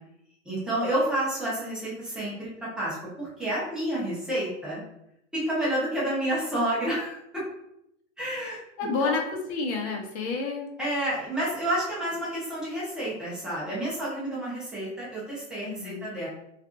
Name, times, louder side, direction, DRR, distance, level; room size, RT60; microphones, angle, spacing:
voice 1, 0.4-4.8 5.3-7.4 8.2-8.6 9.0-9.2 10.8-16.3, right 1 dB, ahead, -8 dB, 0.6 m, -29 dB
voice 2, 8.8-10.7 15.6-16.1, left 4 dB, 55° left, 2 dB, 0.7 m, -30 dB
2.6 x 2.5 x 2.5 m, 0.78 s
hypercardioid pair, 150°, 39 cm